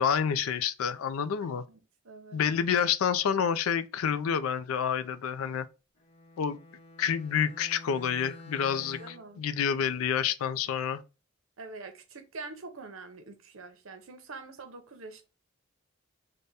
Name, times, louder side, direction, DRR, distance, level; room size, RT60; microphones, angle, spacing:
voice 1, 0.0-1.6 2.3-5.7 6.4-6.6 7.0-9.0 9.4-11.0, left 7 dB, 85° left, 0.4 m, -28 dB
voice 2, 1.4-2.4 8.7-9.4 11.6-15.2, right 3 dB, 75° right, 0.7 m, -45 dB
Bowed string instrument, 6.0-9.4, left 2 dB, 30° left, 0.9 m, -49 dB
3.4 x 2.2 x 4.0 m
head